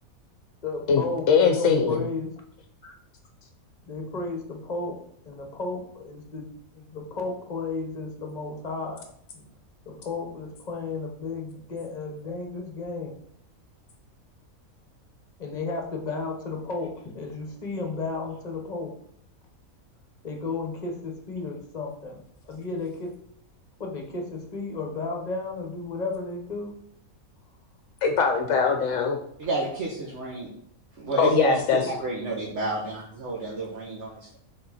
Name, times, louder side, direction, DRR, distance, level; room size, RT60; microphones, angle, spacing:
voice 1, 0.6-2.3 2.8-2.9 3.9-9.1 9.3-9.5 9.9-13.2 15.4-18.9 20.2-23.1 23.8-26.7 31.8-32.1, left 3 dB, 30° left, 2 dB, 1.2 m, -33 dB
voice 2, 1.3-2.0 28.0-29.2 31.2-31.8, left 5 dB, 65° left, 4 dB, 1.0 m, -21 dB
voice 3, 29.4-30.5 31.0-34.4, right 3 dB, 55° right, -4 dB, 1.5 m, -30 dB
6.7 x 3.7 x 4.2 m, 0.67 s
omnidirectional pair, 1.5 m